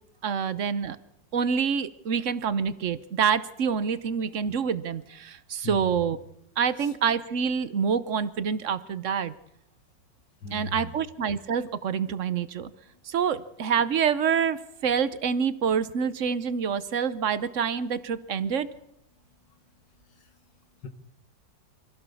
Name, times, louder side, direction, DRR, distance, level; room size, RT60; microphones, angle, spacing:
voice 1, 0.2-1.0 1.3-6.2 6.6-9.3 10.5-12.7 13.0-18.7, right 7 dB, 50° right, 14 dB, 1.1 m, -27 dB
voice 2, 5.6-6.0 6.8-6.9 10.4-11.0 20.8-20.9, left 3 dB, 85° left, 7 dB, 2.8 m, -37 dB
25.0 x 16.0 x 7.1 m, 0.80 s
omnidirectional pair, 1.9 m